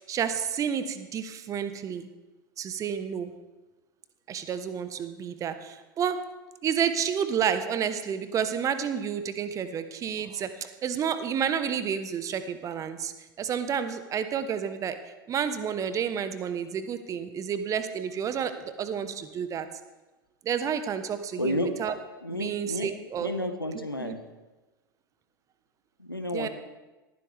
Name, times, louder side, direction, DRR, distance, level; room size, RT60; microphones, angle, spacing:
voice 1, 0.1-2.1 2.6-3.3 4.3-6.2 6.6-13.1 13.4-15.0 15.3-19.7 20.4-21.9 22.3-23.3 23.7-24.2 26.3-26.5, right 8 dB, 30° right, 11 dB, 1.3 m, -30 dB
voice 2, 21.4-21.7 22.2-22.9 23.2-24.2 26.0-26.5, left 1 dB, 90° left, 7 dB, 1.4 m, -31 dB
20.0 x 14.5 x 3.6 m, 1.1 s
figure-of-eight pair, 85°, 12 cm